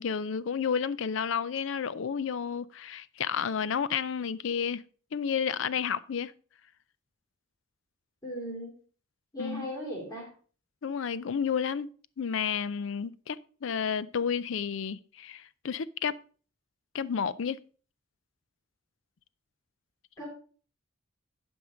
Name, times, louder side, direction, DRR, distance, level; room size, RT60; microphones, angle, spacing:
voice 1, 0.0-4.8 5.1-6.3 9.4-9.7 10.8-11.9 12.2-16.2 16.9-17.6, left 7 dB, 70° left, 0.4 m, -31 dB
voice 2, 8.2-8.7 9.3-10.3 20.2-20.3, equal, 15° left, 3.3 m, -37 dB
11.0 x 5.4 x 4.9 m
head